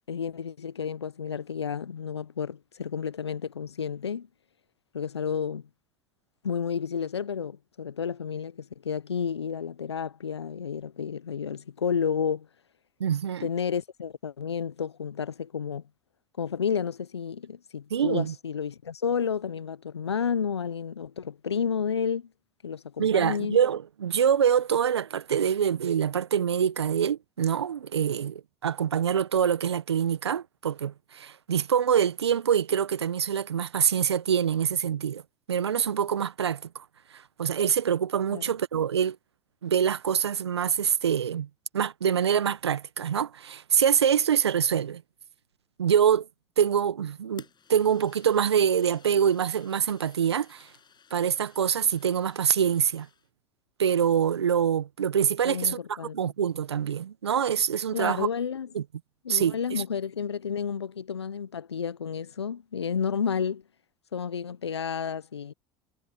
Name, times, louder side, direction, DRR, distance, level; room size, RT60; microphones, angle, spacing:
voice 1, 0.1-4.3 4.9-5.6 6.4-12.5 13.4-15.8 16.4-22.3 22.6-23.6 38.3-38.5 55.4-56.3 57.9-58.7 59.2-63.6 64.1-65.5, left 7 dB, 90° left, 0.9 m, -31 dB
voice 2, 13.0-13.5 17.9-18.3 23.0-35.2 35.5-36.8 37.1-39.2 39.6-41.5 41.7-45.0 45.8-46.3 46.6-47.4 47.7-50.7 51.1-53.1 53.8-55.8 56.1-58.3 58.7-58.8 59.3-59.8, right 8 dB, 85° right, 1.4 m, -25 dB
Fire, 47.4-53.3, left 7 dB, 35° left, 7.4 m, -55 dB
hypercardioid pair, 70°, 14 cm